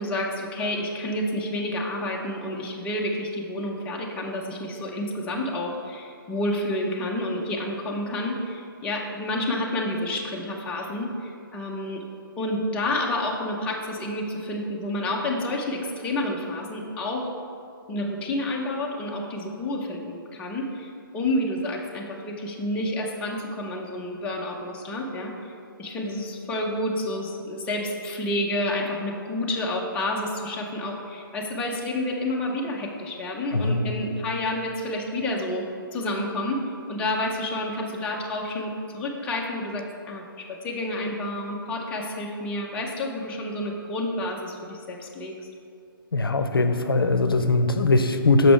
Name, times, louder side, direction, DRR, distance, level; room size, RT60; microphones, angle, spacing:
voice 1, 0.0-12.0 12.4-17.3 17.9-25.5 25.8-35.7 35.9-36.6 36.9-45.3, left 1 dB, 10° left, -1 dB, 0.4 m, -29 dB
voice 2, 33.5-33.9 46.1-48.5, left 3 dB, 70° left, 8 dB, 0.5 m, -20 dB
6.0 x 5.8 x 3.5 m, 2.5 s
figure-of-eight pair, 130°, 12 cm